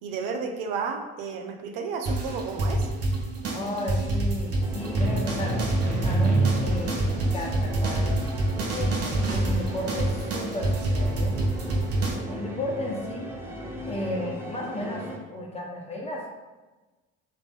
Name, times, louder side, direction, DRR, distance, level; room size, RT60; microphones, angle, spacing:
voice 1, 0.0-2.9, right 5 dB, 70° right, 4 dB, 0.8 m, -32 dB
sound 1, 2.1-12.1, right 2 dB, 45° right, 1.1 m, -26 dB
voice 2, 3.5-5.5 6.0-8.2 8.7-11.3 12.3-13.3 13.8-16.3, left 1 dB, 15° left, -1 dB, 1.4 m, -34 dB
sound 2, 4.6-15.2, equal, 5° right, 0.8 m, -37 dB
3.8 x 3.4 x 3.7 m, 1.2 s
hypercardioid pair, 60°, 35 cm